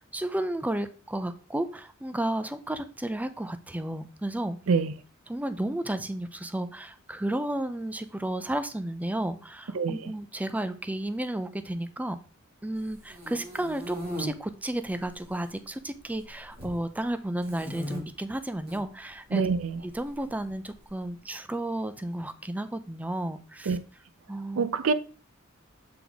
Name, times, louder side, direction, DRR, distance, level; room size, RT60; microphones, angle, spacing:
voice 1, 0.1-4.6 5.3-12.2 12.6-19.4 19.9-23.8 24.3-24.7, right 1 dB, 5° right, 0.4 m, -32 dB
voice 2, 9.7-10.1 19.3-19.8 23.7-23.8 24.6-24.9, right 5 dB, 80° right, 0.5 m, -25 dB
sound 1, 12.9-14.3 14.9-15.5 15.8-16.8 17.4-18.0 18.5-18.8 19.9-20.9, equal, 50° right, 2.1 m, -38 dB
7.7 x 3.9 x 3.4 m
head